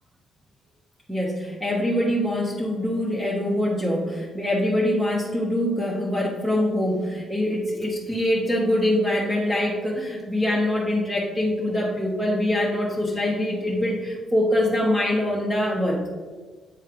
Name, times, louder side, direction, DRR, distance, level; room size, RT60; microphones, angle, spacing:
voice 1, 1.1-16.0, left 1 dB, 5° right, -3 dB, 1.1 m, -24 dB
8.4 x 3.2 x 5.0 m, 1.5 s
cardioid pair, 90°, 0 cm